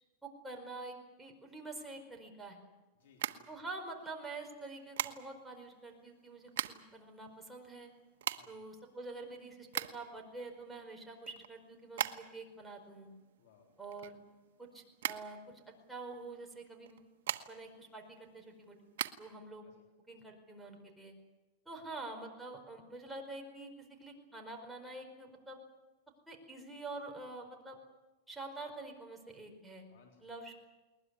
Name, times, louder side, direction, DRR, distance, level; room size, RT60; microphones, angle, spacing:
voice 1, 0.2-2.6 3.5-7.9 8.5-13.1 13.8-14.2 14.6-17.1 17.5-18.8 19.2-19.6 20.1-21.1 21.6-23.7 24.0-25.6 26.3-27.8 28.3-29.9 30.2-30.6, right 2 dB, 5° right, 1 dB, 4.8 m, -47 dB
voice 2, 3.0-3.6 8.3-8.6 13.4-13.7 19.6-19.8 21.8-22.1 29.9-30.3, left 6 dB, 75° left, 2 dB, 3.8 m, -65 dB
sound 1, 3.1-4.1 5.0-5.6 6.2-7.0 7.3-7.4 7.6-10.2 10.6-12.5 12.8-14.6 15.0-16.0 16.8-17.8 18.2-19.1, right 12 dB, 85° right, 1.2 m, -39 dB
21.0 x 20.5 x 9.7 m, 1.2 s
supercardioid pair, 140°, 0 cm